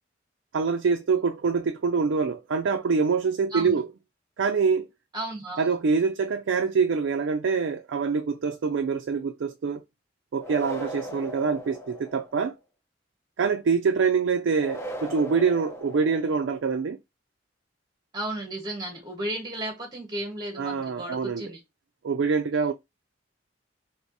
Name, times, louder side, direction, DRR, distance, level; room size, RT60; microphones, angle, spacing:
voice 1, 0.5-3.9 4.4-4.9 5.6-9.8 10.3-12.5 13.4-17.0 20.6-21.5 22.0-22.7, right 5 dB, 75° right, 0.4 m, -25 dB
voice 2, 5.1-5.7 18.1-21.6, right 1 dB, 25° right, 1.3 m, -34 dB
sound 1, 10.4-12.5 14.6-16.6, equal, 15° left, 0.8 m, -38 dB
4.5 x 2.9 x 2.8 m
head